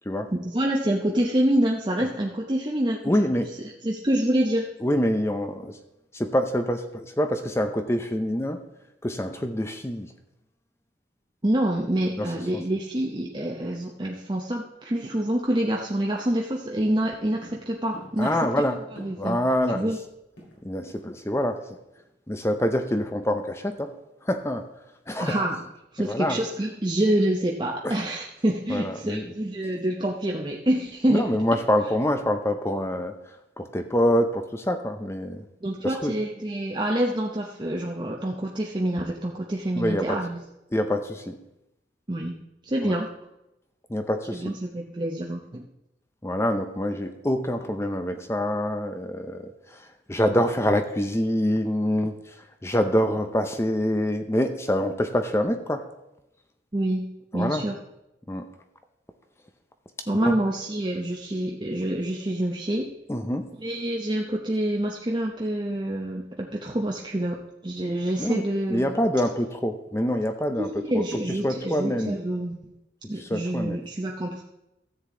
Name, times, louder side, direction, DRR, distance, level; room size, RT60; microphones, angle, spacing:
voice 1, 0.3-3.3 3.8-4.7 11.4-18.3 19.0-19.4 19.7-20.0 25.2-25.6 25.9-31.3 35.6-40.4 42.1-42.4 42.6-43.1 44.3-45.6 56.7-57.1 57.3-57.8 60.1-62.9 63.6-67.4 67.6-68.9 70.6-72.7 73.1-74.4, right 1 dB, 25° right, -1 dB, 0.8 m, -27 dB
voice 2, 3.0-3.5 4.8-5.8 6.1-8.6 9.0-10.1 12.2-12.6 18.2-18.8 19.2-19.9 20.6-21.6 22.3-23.9 24.2-24.7 25.1-25.5 26.0-26.4 27.8-28.0 28.7-29.3 31.1-33.1 33.6-35.4 35.8-36.1 39.8-40.2 40.7-41.4 42.8-43.0 43.9-44.6 46.2-55.9 57.3-57.7 58.3-58.5 60.2-60.4 63.1-63.5 68.2-68.4 68.7-72.2 73.2-73.8, equal, 15° left, 7 dB, 0.6 m, -26 dB
sound 1, 16.8-19.5 19.7-19.8 20.1-21.1 21.4-21.6 21.9-22.2, equal, 85° left, 3.9 m, -48 dB
13.0 x 7.9 x 3.8 m, 0.88 s
head